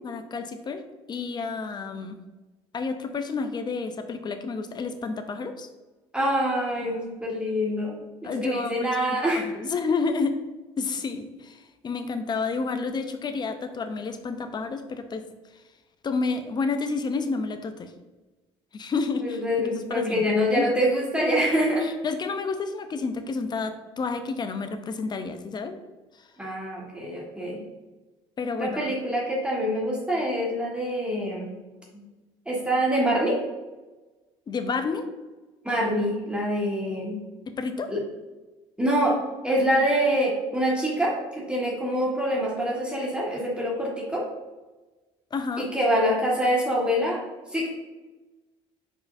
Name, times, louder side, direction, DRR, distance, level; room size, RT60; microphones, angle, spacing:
voice 1, 0.0-0.8 1.1-2.2 2.7-5.7 8.2-9.0 9.4-10.4 10.8-15.2 16.0-17.9 18.7-19.4 19.8-20.2 20.5-20.6 21.8-25.8 28.4-28.9 34.5-35.1 37.6-37.9 45.3-45.7, left 4 dB, 30° left, 9 dB, 0.5 m, -30 dB
voice 2, 6.1-8.0 8.2-9.5 19.2-21.9 26.4-27.6 28.6-31.5 31.9-32.0 32.5-33.4 35.6-37.2 37.9-38.0 38.8-39.2 39.4-44.2 45.6-47.2 47.5-47.7, equal, 5° right, -4 dB, 1.3 m, -25 dB
4.5 x 4.4 x 2.5 m, 1.2 s
hypercardioid pair, 60°, 14 cm